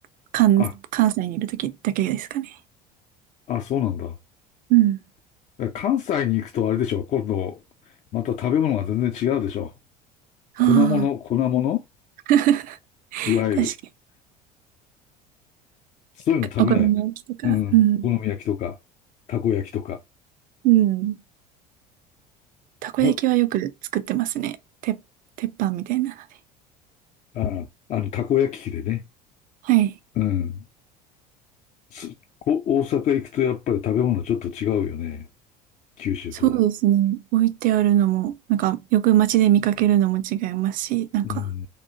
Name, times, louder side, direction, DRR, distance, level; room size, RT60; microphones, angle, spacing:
voice 1, 0.3-2.5 4.7-5.0 10.6-11.1 12.3-12.8 13.1-13.7 16.6-18.1 20.6-21.2 22.8-24.6 24.8-25.0 25.4-26.1 29.6-30.0 36.4-41.4, right 13 dB, 40° right, 0.5 m, -21 dB
voice 2, 3.5-4.1 5.6-7.6 8.1-9.7 10.6-11.8 13.3-13.7 16.2-16.9 17.4-17.8 18.0-18.8 19.3-20.0 23.0-23.2 27.3-29.0 30.2-30.6 31.9-32.2 32.5-35.3 36.0-36.5 41.2-41.7, left 10 dB, 35° left, 0.4 m, -24 dB
3.5 x 2.4 x 2.7 m
figure-of-eight pair, 65°, 21 cm